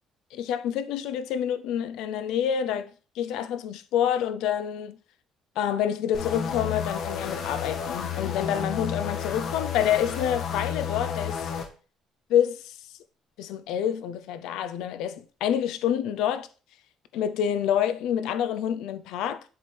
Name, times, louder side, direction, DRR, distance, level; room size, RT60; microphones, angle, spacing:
voice 1, 0.3-5.0 5.6-11.5 12.3-12.8 13.4-16.5 17.1-19.4, left 9 dB, 85° left, 0.5 m, -27 dB
sound 1, 6.1-11.7, left 7 dB, 50° left, 0.9 m, -31 dB
7.7 x 3.3 x 4.3 m
cardioid pair, 165°, 0 cm